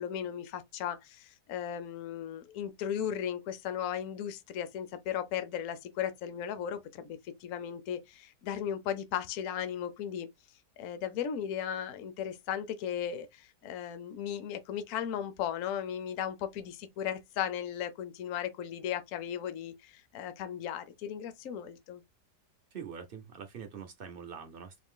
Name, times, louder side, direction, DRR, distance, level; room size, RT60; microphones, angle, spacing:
voice 1, 0.0-10.3 10.8-22.0, left 9 dB, 60° left, 0.9 m, -36 dB
voice 2, 22.7-24.8, right 7 dB, 70° right, 0.5 m, -44 dB
4.0 x 2.6 x 3.7 m
omnidirectional pair, 1.8 m